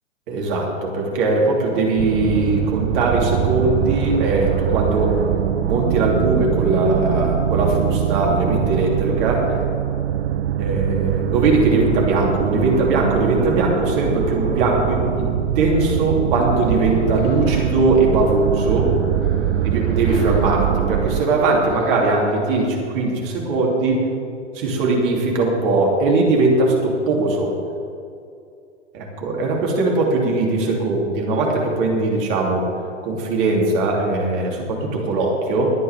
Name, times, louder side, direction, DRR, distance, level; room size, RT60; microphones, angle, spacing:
voice 1, 0.3-5.1 5.6-9.7 10.6-18.9 19.6-24.0 24.5-27.5 28.9-32.6 33.0-35.7, right 2 dB, 45° right, -1 dB, 3.1 m, -20 dB
sound 1, 2.0-21.2, right 12 dB, 60° right, 0.6 m, -23 dB
sound 2, 6.3-8.9, left 2 dB, 75° left, 2.5 m, -37 dB
sound 3, 15.5-22.2, left 2 dB, 30° left, 1.6 m, -36 dB
21.5 x 8.6 x 3.6 m, 2.5 s
figure-of-eight pair, 105°, 36 cm